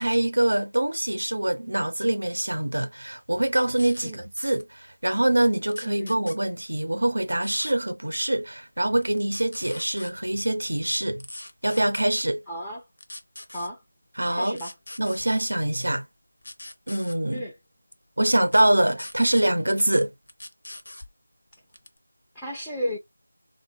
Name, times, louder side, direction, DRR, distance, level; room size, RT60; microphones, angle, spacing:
voice 1, 0.0-11.2 11.6-12.4 14.2-14.6 15.0-16.1 16.9-17.4 18.2-20.1, right 1 dB, 80° right, 0.5 m, -24 dB
sound 1, 3.7-4.1 4.4-4.6 5.7-6.4 7.4-7.7 9.0-10.1 11.2-12.0 13.0-13.7 14.5-15.2 16.4-17.2 18.5-18.6 19.0-19.4 20.3-21.1 21.7-22.0, left 1 dB, 65° left, 0.6 m, -41 dB
voice 2, 5.8-6.1 12.5-12.8 13.5-13.8 14.3-14.7 17.3-17.5 22.4-23.0, equal, 5° left, 0.4 m, -33 dB
3.5 x 2.2 x 3.0 m
figure-of-eight pair, 170°, 0 cm